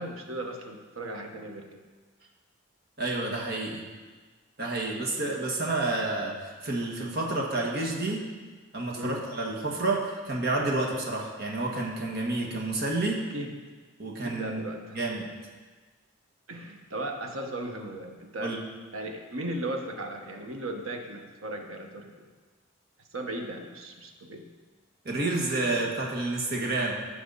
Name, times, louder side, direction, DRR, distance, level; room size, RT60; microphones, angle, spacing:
voice 1, 0.0-1.8 8.9-9.2 13.3-13.5 14.2-15.0 16.5-18.5 18.9-22.3 23.1-24.4, right 1 dB, 90° right, 3 dB, 1.3 m, -36 dB
voice 2, 3.0-3.9 4.6-8.2 8.7-13.2 14.0-14.6 14.9-15.3 18.4-18.6 25.0-26.9, right 2 dB, 50° right, -1 dB, 1.6 m, -29 dB
15.0 x 5.8 x 4.1 m, 1.4 s
head